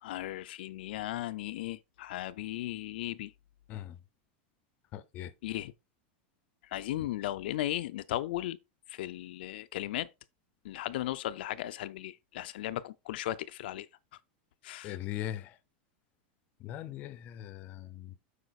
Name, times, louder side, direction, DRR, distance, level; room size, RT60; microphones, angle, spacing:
voice 1, 0.0-3.3 5.4-5.7 6.6-8.6 8.9-10.1 10.6-13.9 14.6-15.0, left 14 dB, 65° left, 0.5 m, -36 dB
voice 2, 4.9-5.3 14.8-15.5 16.6-18.2, left 12 dB, 30° left, 0.6 m, -40 dB
7.9 x 5.0 x 4.1 m
supercardioid pair, 180°, 6 cm